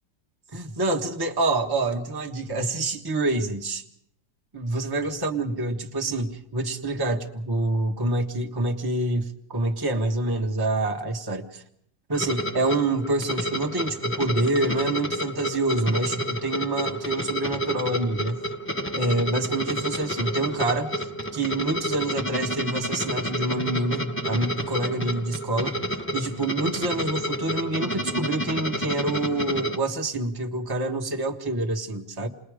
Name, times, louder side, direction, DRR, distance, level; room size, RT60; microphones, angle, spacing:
voice 1, 0.5-3.8 4.5-11.6 12.1-18.4 18.9-25.8 26.1-32.3, right 2 dB, 15° right, 2 dB, 1.2 m, -27 dB
sound 1, 12.1-29.8, equal, 10° left, 0.6 m, -30 dB
29.5 x 20.5 x 5.0 m, 0.72 s
omnidirectional pair, 2.2 m